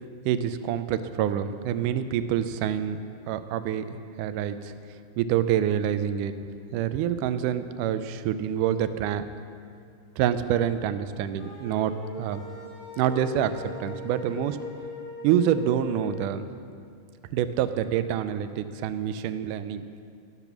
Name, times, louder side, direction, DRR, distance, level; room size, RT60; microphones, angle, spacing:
voice 1, 0.3-3.0 3.3-4.7 5.2-6.3 6.7-9.2 10.2-12.4 13.0-14.6 15.2-16.5 17.3-19.8, right 10 dB, 90° right, 11 dB, 2.1 m, -27 dB
sound 1, 11.4-16.2, left 1 dB, 90° left, 4.8 m, -41 dB
13.5 x 6.8 x 6.0 m, 2.3 s
omnidirectional pair, 3.6 m